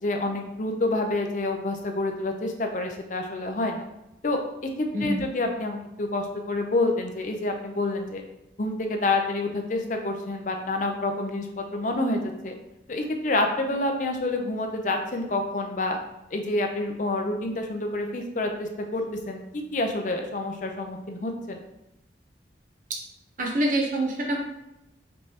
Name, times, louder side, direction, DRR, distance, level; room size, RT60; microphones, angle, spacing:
voice 1, 0.0-3.8 4.2-4.4 4.8-8.2 8.6-12.5 12.9-16.0 16.3-19.4 19.7-21.6, left 2 dB, 45° left, 4 dB, 0.5 m, -28 dB
voice 2, 4.9-5.3 23.4-24.4, right 1 dB, 45° right, -1 dB, 0.8 m, -25 dB
5.2 x 3.3 x 2.9 m, 0.90 s
head